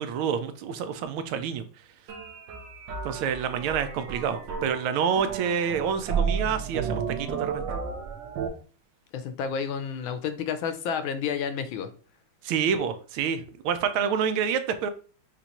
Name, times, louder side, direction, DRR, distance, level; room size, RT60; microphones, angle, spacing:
voice 1, 0.0-1.6 3.0-7.6 12.4-14.9, right 7 dB, 90° right, 1.5 m, -28 dB
sound 1, 2.1-8.5, right 6 dB, 70° right, 1.5 m, -32 dB
voice 2, 9.1-11.9, left 7 dB, 80° left, 1.4 m, -30 dB
6.7 x 2.5 x 2.9 m
omnidirectional pair, 2.2 m